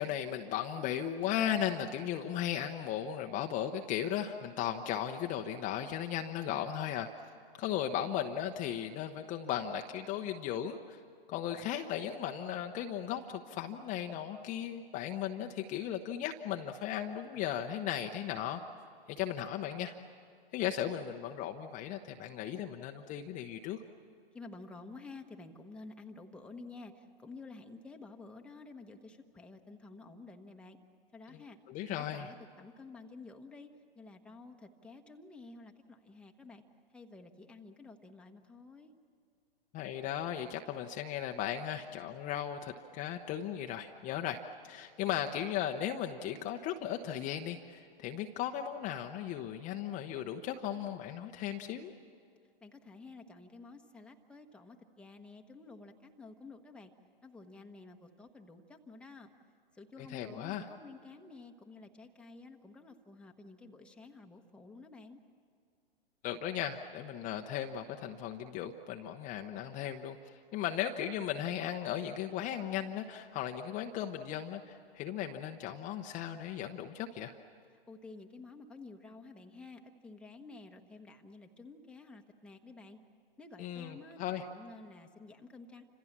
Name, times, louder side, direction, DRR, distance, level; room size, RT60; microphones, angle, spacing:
voice 1, 0.0-7.1 7.6-11.0 11.3-18.6 19.1-19.9 20.5-23.8 31.3-32.3 39.7-44.4 44.6-51.9 60.0-60.7 66.2-77.3 83.6-84.4, left 10 dB, 25° left, 4 dB, 0.9 m, -36 dB
voice 2, 24.3-30.8 31.1-31.6 31.9-33.7 33.9-36.6 36.9-38.9 52.6-56.9 57.2-59.3 59.7-65.2 77.9-83.0 83.4-85.8, left 3 dB, 5° left, 3 dB, 1.2 m, -51 dB
29.5 x 26.5 x 7.4 m, 2.3 s
hypercardioid pair, 125°, 30 cm